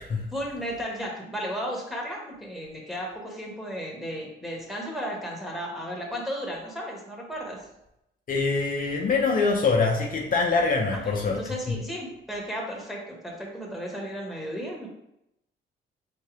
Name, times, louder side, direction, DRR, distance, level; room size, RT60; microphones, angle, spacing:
voice 1, 0.3-7.6 10.9-14.9, equal, ahead, -3 dB, 1.4 m, -34 dB
voice 2, 8.3-11.4, left 4 dB, 45° left, 0 dB, 0.7 m, -24 dB
4.1 x 3.7 x 3.3 m, 0.84 s
cardioid pair, 90°, 20 cm